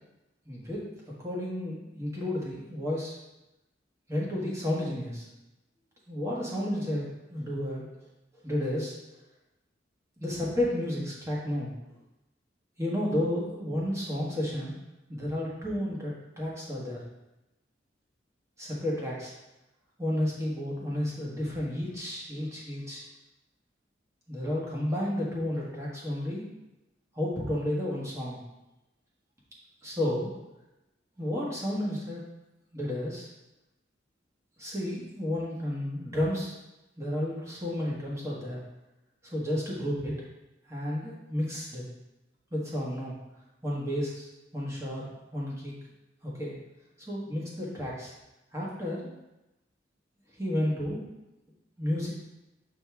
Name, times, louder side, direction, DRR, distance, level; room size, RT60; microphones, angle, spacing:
voice 1, 0.4-0.9 1.2-3.2 4.1-5.3 6.1-7.9 8.4-8.9 10.2-11.7 12.8-14.7 15.1-17.0 18.6-19.3 20.0-23.1 24.3-26.4 27.1-28.4 29.8-30.3 31.2-32.2 32.7-33.3 34.6-36.6 37.0-38.6 39.2-40.2 40.7-41.8 42.5-43.1 43.6-45.7 46.2-46.6 47.0-48.1 48.5-49.1 50.4-51.1 51.8-52.1, left 1 dB, 15° right, -5 dB, 1.4 m, -32 dB
7.1 x 4.1 x 3.5 m, 0.96 s
head